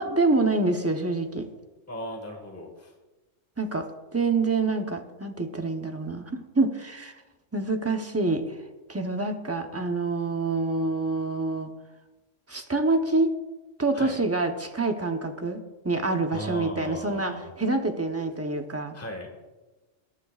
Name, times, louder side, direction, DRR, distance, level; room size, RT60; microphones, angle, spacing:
voice 1, 0.0-1.5 3.6-7.2 7.5-8.6 8.9-11.7 12.5-13.3 13.8-19.0, right 3 dB, 15° right, 5 dB, 0.8 m, -26 dB
voice 2, 1.9-2.9 13.9-14.2 16.3-17.5 18.9-19.3, equal, 10° left, 2 dB, 1.6 m, -37 dB
20.0 x 11.0 x 2.4 m, 1.2 s
omnidirectional pair, 1.3 m